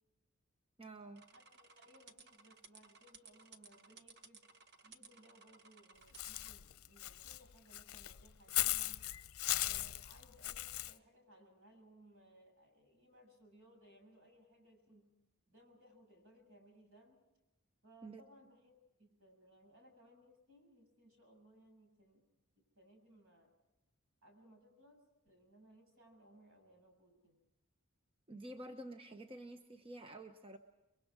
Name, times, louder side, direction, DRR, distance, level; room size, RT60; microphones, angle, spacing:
voice 1, 0.8-1.3 18.0-18.2 28.3-30.6, right 1 dB, 25° right, 6 dB, 1.0 m, -49 dB
sound 1, 1.2-6.5, right 5 dB, 50° right, 1.3 m, -60 dB
voice 2, 1.3-4.5 4.8-9.0 9.6-15.1 15.5-17.2 17.8-22.2 22.6-23.5 24.2-27.4, equal, 75° right, 3 dB, 7.3 m, -64 dB
Walk footsteps / Bird, 6.2-10.9, left 15 dB, 75° left, 0.7 m, -38 dB
29.5 x 22.5 x 4.9 m, 0.96 s
head